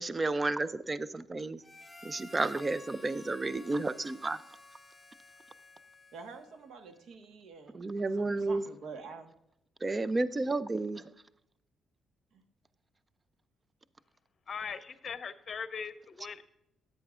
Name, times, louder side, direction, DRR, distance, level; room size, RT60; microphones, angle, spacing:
voice 1, 0.0-1.6 2.0-4.4 7.7-8.6 9.8-11.1, right 2 dB, 25° right, 15 dB, 0.4 m, -32 dB
Harmonica, 1.6-6.6, left 2 dB, 10° left, 0.9 m, -53 dB
voice 2, 6.1-9.3 12.3-12.4, right 4 dB, 75° right, 7 dB, 1.3 m, -48 dB
voice 3, 14.5-16.4, left 6 dB, 45° left, 11 dB, 0.8 m, -40 dB
13.5 x 8.9 x 2.4 m, 0.83 s
cardioid pair, 90°, 0 cm